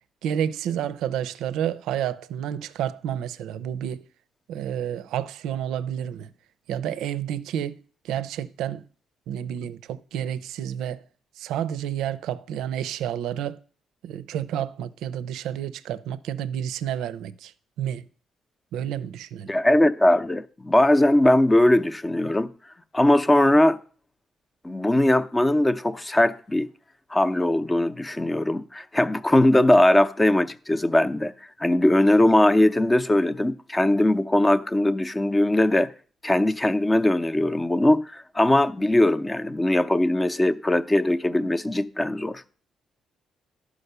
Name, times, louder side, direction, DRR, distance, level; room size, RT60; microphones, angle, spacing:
voice 1, 0.2-4.0 4.5-6.3 6.7-7.8 8.0-8.8 9.3-11.0 11.4-13.6 14.0-17.5 17.8-18.0 18.7-19.5, right 10 dB, 85° right, 0.5 m, -30 dB
voice 2, 19.5-22.5 22.9-23.8 24.6-26.7 27.1-31.3 31.6-35.9 36.2-42.4, left 1 dB, 15° left, 0.6 m, -20 dB
11.5 x 4.9 x 6.7 m
cardioid pair, 90°, 0 cm